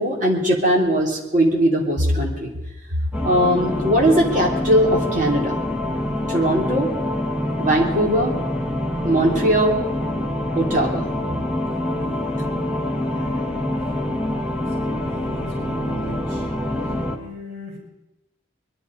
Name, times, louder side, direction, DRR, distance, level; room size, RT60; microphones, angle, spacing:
voice 1, 0.0-2.5 3.2-5.6 6.3-6.9 7.6-8.4 9.0-9.8 10.5-11.0, equal, 40° right, -1 dB, 3.2 m, -19 dB
sound 1, 3.1-17.2, left 1 dB, 5° right, 1.6 m, -25 dB
voice 2, 11.9-12.2 13.1-13.7 14.0-14.6 15.0-16.4 17.1-17.8, left 1 dB, 70° right, -3 dB, 5.5 m, -39 dB
22.5 x 11.5 x 5.3 m, 0.93 s
head